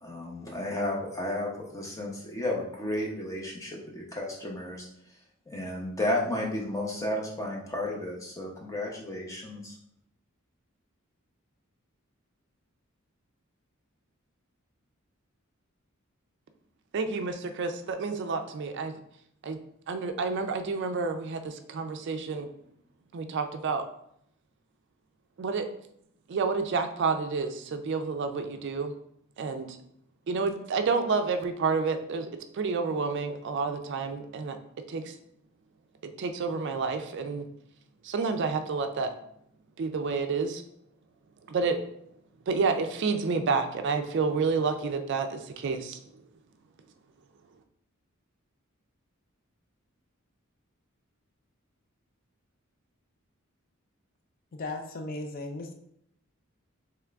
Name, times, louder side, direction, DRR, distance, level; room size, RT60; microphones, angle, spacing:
voice 1, 0.0-4.9 5.5-9.8, left 1 dB, 15° left, -2 dB, 0.8 m, -33 dB
voice 2, 16.9-18.9 19.4-19.6 19.9-22.5 23.1-23.8 25.4-25.7 26.3-28.9 29.4-29.7 30.3-32.3 32.5-34.6 34.9-35.1 36.2-37.5 38.0-39.1 39.8-40.6 41.5-41.8 42.5-46.0, right 4 dB, 55° right, 7 dB, 0.4 m, -29 dB
voice 3, 54.5-55.7, left 2 dB, 45° left, 4 dB, 0.4 m, -36 dB
3.6 x 3.1 x 3.4 m, 0.73 s
head